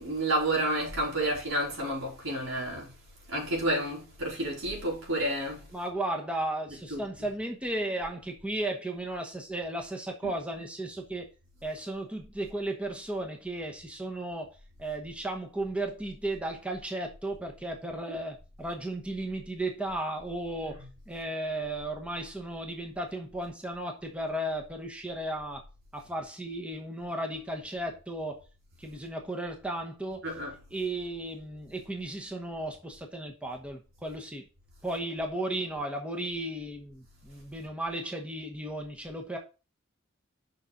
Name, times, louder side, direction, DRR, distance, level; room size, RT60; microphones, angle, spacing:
voice 1, 0.0-2.9 3.3-5.6 6.9-7.3 18.1-18.2 20.6-20.9 30.2-30.5, right 1 dB, 80° right, 4.4 m, -30 dB
voice 2, 5.7-11.3 11.6-25.6 25.9-28.4 28.8-30.3 30.7-34.5 34.8-39.4, right 1 dB, 5° right, 1.0 m, -35 dB
7.0 x 5.7 x 3.9 m
head